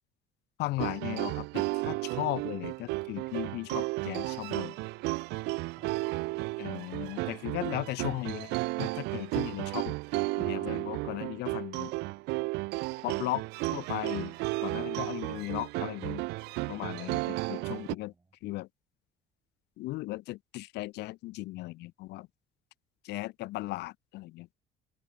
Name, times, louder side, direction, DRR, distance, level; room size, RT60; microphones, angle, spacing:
voice 1, 0.6-4.7 6.6-8.5 8.8-10.0 10.4-11.9 13.0-13.4 13.7-14.3 14.6-16.2 16.7-18.1 18.4-18.7 19.8-22.3 23.0-24.5, left 19 dB, 80° left, 0.7 m, -36 dB
sound 1, 0.8-17.9, right 23 dB, 90° right, 0.4 m, -33 dB
voice 2, 5.8-7.2 17.5-18.3, right 3 dB, 20° right, 3.6 m, -60 dB
cardioid pair, 110°, 17 cm